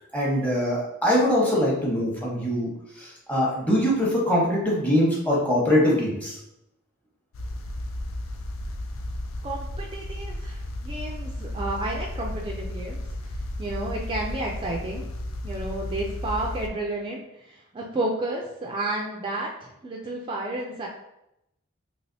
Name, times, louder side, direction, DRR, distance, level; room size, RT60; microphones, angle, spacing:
voice 1, 0.1-2.7 3.0-6.4, equal, 10° left, -5 dB, 0.9 m, -23 dB
sound 1, 7.3-16.7, left 1 dB, 80° left, 0.4 m, -34 dB
voice 2, 9.4-13.0 13.6-15.0 15.4-20.9, right 2 dB, 25° right, -1 dB, 0.3 m, -31 dB
3.2 x 3.0 x 2.6 m, 0.84 s
head